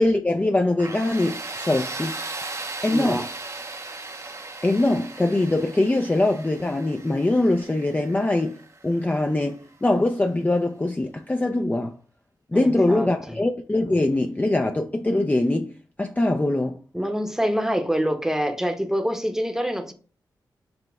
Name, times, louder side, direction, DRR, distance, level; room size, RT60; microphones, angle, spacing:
voice 1, 0.0-2.2 2.8-3.2 4.6-8.6 8.8-11.9 12.5-15.7 16.0-16.8, left 2 dB, 20° left, 0.4 m, -22 dB
Tools, 0.8-9.5, right 3 dB, 40° right, 0.7 m, -37 dB
voice 2, 2.9-3.3 12.5-13.4 16.9-19.9, equal, 5° right, 0.9 m, -26 dB
6.0 x 2.1 x 3.5 m
cardioid pair, 45°, 8 cm